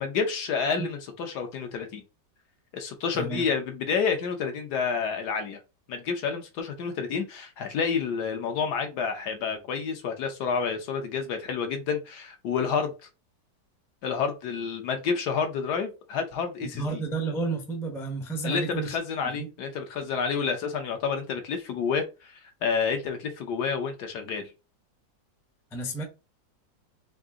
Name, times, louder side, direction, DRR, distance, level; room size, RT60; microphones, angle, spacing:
voice 1, 0.0-2.0 2.7-5.6 5.9-12.9 14.0-17.0 18.4-24.5, left 6 dB, 70° left, 1.3 m, -29 dB
voice 2, 3.1-3.5 16.6-19.0 19.3-19.5 25.7-26.0, right 3 dB, 5° left, 0.5 m, -31 dB
3.8 x 2.6 x 3.6 m
omnidirectional pair, 2.0 m